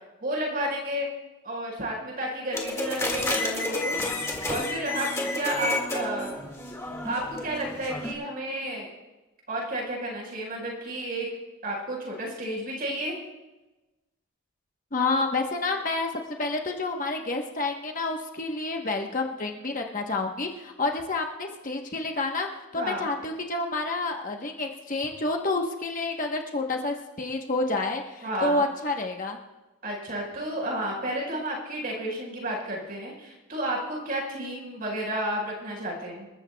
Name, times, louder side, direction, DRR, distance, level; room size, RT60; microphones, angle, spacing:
voice 1, 0.2-1.1 1.4-4.0 4.4-6.4 7.0-8.9 9.5-11.3 11.6-13.2 22.7-23.1 28.2-28.6 29.8-36.3, right 1 dB, 40° right, -2 dB, 4.7 m, -31 dB
sound 1, 2.5-8.1, left 2 dB, 15° left, 1.9 m, -30 dB
voice 2, 14.9-29.4, left 3 dB, 35° left, 2 dB, 1.0 m, -29 dB
27.0 x 14.0 x 2.3 m, 1.1 s
head